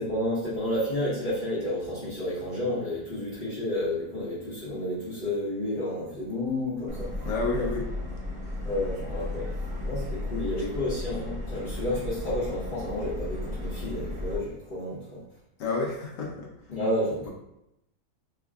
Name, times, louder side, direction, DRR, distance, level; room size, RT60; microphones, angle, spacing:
voice 1, 0.0-7.3 8.6-9.5 9.8-15.2 16.7-17.3, left 1 dB, 35° left, -11 dB, 1.0 m, -31 dB
Subway metro underground, 6.9-14.4, left 1 dB, 10° right, 0.3 m, -34 dB
voice 2, 7.2-7.9 10.6-10.7 15.6-16.7 17.2-17.3, left 3 dB, 60° left, -1 dB, 1.0 m, -30 dB
3.5 x 2.2 x 3.5 m, 0.84 s
omnidirectional pair, 1.7 m